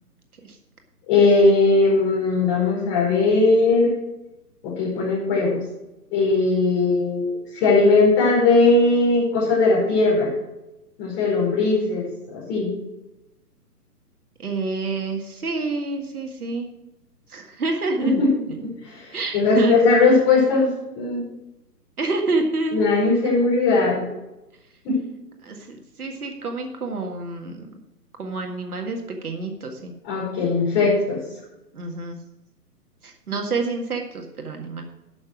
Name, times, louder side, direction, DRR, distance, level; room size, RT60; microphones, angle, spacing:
voice 1, 1.1-3.9 4.6-5.6 6.1-7.2 7.5-10.3 11.0-12.0 12.3-12.7 18.0-18.3 18.9-19.0 19.3-20.7 21.0-21.2 22.7-24.0 24.8-25.0 30.0-31.2, left 3 dB, 25° left, -4 dB, 4.8 m, -18 dB
voice 2, 14.4-16.7 17.3-18.2 18.5-18.6 19.1-19.8 22.0-23.0 25.4-27.7 28.2-29.9 31.7-32.2 33.0-34.8, right 3 dB, 65° right, 3 dB, 1.9 m, -28 dB
11.0 x 6.4 x 6.1 m, 0.93 s
figure-of-eight pair, 135°, 48 cm